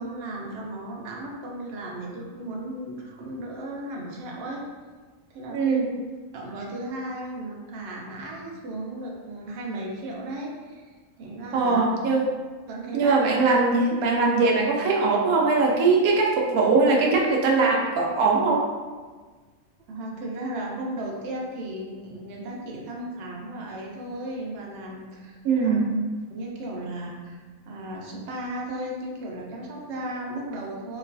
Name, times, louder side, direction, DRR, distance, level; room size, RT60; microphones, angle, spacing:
voice 1, 0.0-4.6 5.3-6.0 6.3-10.9 11.2-11.8 12.7-13.2 19.9-25.8 26.3-27.4 27.7-31.0, right 1 dB, 60° right, -2 dB, 0.8 m, -35 dB
voice 2, 5.5-5.9 11.5-12.3 12.9-18.6 25.4-25.9, right 3 dB, 85° right, -2 dB, 1.1 m, -21 dB
3.1 x 3.0 x 2.5 m, 1.4 s
omnidirectional pair, 1.5 m